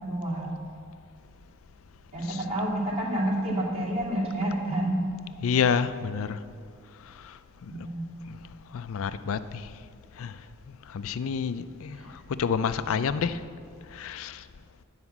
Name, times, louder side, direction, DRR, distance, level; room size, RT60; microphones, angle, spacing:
voice 1, 0.0-0.6 2.1-5.0 7.7-8.2 12.0-12.1, right 1 dB, 30° right, -7 dB, 2.6 m, -29 dB
voice 2, 5.4-6.4 7.2-7.3 7.6-7.7 8.3-8.4 8.7-9.7 10.2-10.3 10.9-12.0 12.4-13.4 13.9-14.4, left 6 dB, 70° left, 12 dB, 0.4 m, -28 dB
9.6 x 4.9 x 7.1 m, 2.3 s
head